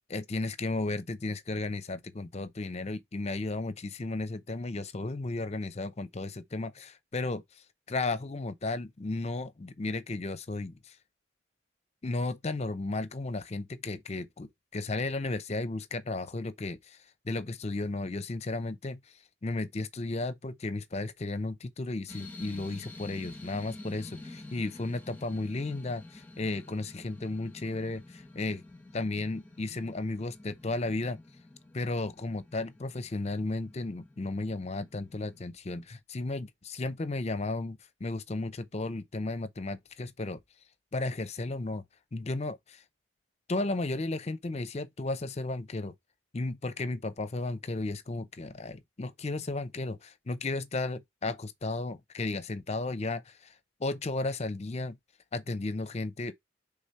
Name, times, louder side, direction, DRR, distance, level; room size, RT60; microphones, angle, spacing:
voice 1, 0.1-7.4 7.9-10.9 12.0-17.0 17.2-19.0 19.4-28.6 28.9-31.2 31.7-40.4 40.9-41.8 42.1-42.8 43.5-45.9 46.3-53.5 53.8-55.0 55.3-56.3, left 2 dB, 35° left, 0.6 m, -34 dB
sound 1, 22.1-35.5, left 2 dB, 10° left, 1.1 m, -49 dB
4.9 x 3.5 x 5.6 m
head